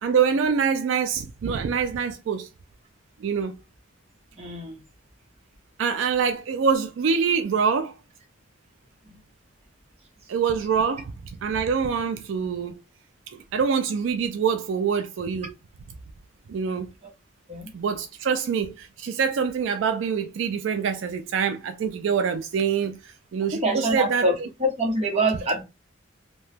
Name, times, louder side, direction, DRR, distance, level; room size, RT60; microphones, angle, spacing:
voice 1, 0.0-2.5 3.2-3.5 5.8-7.9 10.3-11.1 11.4-12.8 13.3-15.5 16.5-16.9 17.7-24.3, right 6 dB, 70° right, 0.3 m, -25 dB
voice 2, 4.4-4.8 9.0-9.2 17.0-17.1 17.5-17.7 23.5-25.6, right 1 dB, 30° right, 0.9 m, -25 dB
2.8 x 2.1 x 3.3 m
head